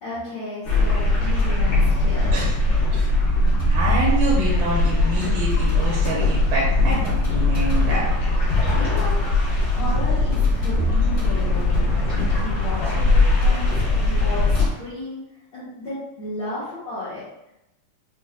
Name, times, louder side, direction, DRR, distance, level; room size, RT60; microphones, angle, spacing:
voice 1, 0.0-2.4 8.7-9.1 9.6-13.7 14.0-15.2 15.5-17.2, left 2 dB, 85° left, -11 dB, 1.2 m, -34 dB
sound 1, 0.6-14.7, left 2 dB, 60° left, 1.5 m, -20 dB
voice 2, 3.7-8.0 8.6-8.7, right 2 dB, 80° right, -4 dB, 2.2 m, -26 dB
6.1 x 2.1 x 2.4 m, 0.87 s
omnidirectional pair, 4.2 m